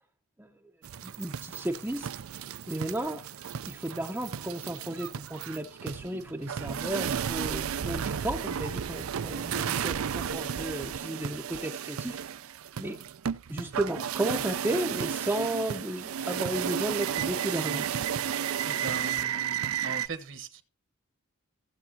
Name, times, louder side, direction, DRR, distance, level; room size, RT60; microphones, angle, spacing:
sound 1, 0.8-20.1, right 8 dB, 80° right, 0.5 m, -33 dB
voice 1, 1.0-2.1 2.7-3.2 3.7-12.2 12.8-13.0 13.5-17.9, right 1 dB, 10° right, 1 dB, 0.6 m, -33 dB
voice 2, 18.6-20.6, right 3 dB, 60° right, 10 dB, 1.1 m, -40 dB
15.5 x 7.1 x 2.8 m, 0.33 s
head